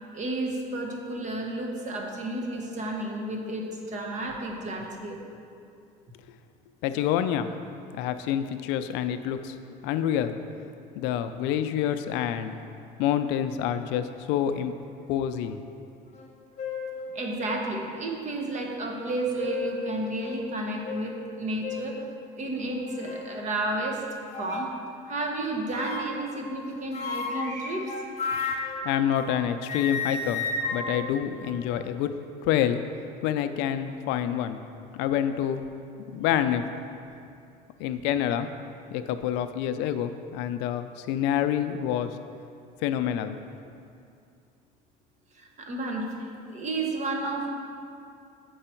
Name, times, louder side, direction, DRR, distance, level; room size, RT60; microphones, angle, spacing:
voice 1, 0.1-5.2 17.1-22.0 22.4-24.0 24.4-24.7 25.1-28.9 42.0-42.1 45.3-47.5, right 2 dB, 40° right, 1 dB, 1.1 m, -32 dB
voice 2, 6.8-7.5 7.9-9.6 9.8-10.4 10.9-12.6 13.0-14.7 15.1-15.6 28.8-30.4 30.7-32.1 32.4-32.8 33.2-34.6 34.9-35.6 36.1-36.6 37.8-38.5 38.9-42.2 42.8-43.4, left 10 dB, 75° left, 10 dB, 0.4 m, -27 dB
sound 1, 16.1-16.3 16.6-17.0 17.7-17.8 19.1-19.8 20.2-20.4 20.8-21.0 21.6-21.9 22.6-23.3 24.3-24.8 25.7-26.3 26.9-29.4 29.6-32.0, left 4 dB, 40° left, 0.9 m, -33 dB
7.7 x 4.7 x 4.4 m, 2.5 s
supercardioid pair, 100°, 18 cm